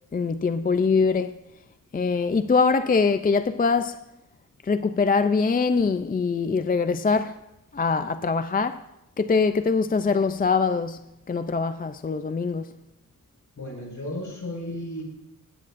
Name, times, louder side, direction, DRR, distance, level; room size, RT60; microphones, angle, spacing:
voice 1, 0.1-1.4 1.9-4.0 4.6-7.4 7.7-8.8 9.2-12.7, left 4 dB, 25° left, 0.4 m, -23 dB
voice 2, 13.6-15.0, left 1 dB, 65° left, 5.2 m, -34 dB
19.5 x 17.5 x 2.5 m
wide cardioid pair, 135°, 33 cm